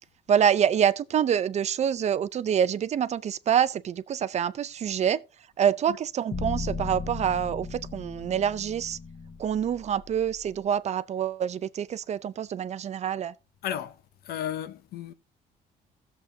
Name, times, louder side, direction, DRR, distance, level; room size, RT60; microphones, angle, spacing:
voice 1, 0.3-5.2 5.6-9.0 9.4-13.3, right 8 dB, 40° right, 0.5 m, -26 dB
sound 1, 6.3-10.5, left 3 dB, 25° left, 1.0 m, -36 dB
voice 2, 13.6-15.1, left 10 dB, 70° left, 0.8 m, -34 dB
16.5 x 7.3 x 2.7 m
cardioid pair, 110°, 17 cm